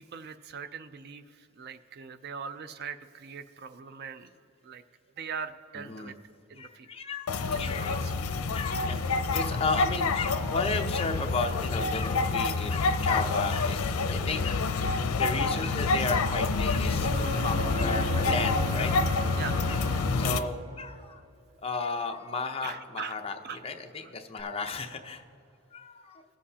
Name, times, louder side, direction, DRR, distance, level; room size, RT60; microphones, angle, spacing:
voice 1, 0.0-4.3 4.6-4.8 5.2-6.1 6.5-6.9 7.5-8.1 19.4-19.6 22.6-23.2 23.4-23.6 24.0-24.1, right 6 dB, 50° right, 11 dB, 0.4 m, -41 dB
voice 2, 5.8-6.1 6.6-8.1 8.5-19.1 19.7-21.2 21.6-23.4 23.6-25.2 25.7-26.2, left 4 dB, 25° left, 4 dB, 0.6 m, -34 dB
sound 1, 7.3-20.4, left 3 dB, 85° left, 0.6 m, -28 dB
sound 2, 16.9-20.7 24.4-24.5, right 2 dB, 65° right, 1.7 m, -36 dB
20.5 x 7.4 x 2.8 m, 2.6 s
head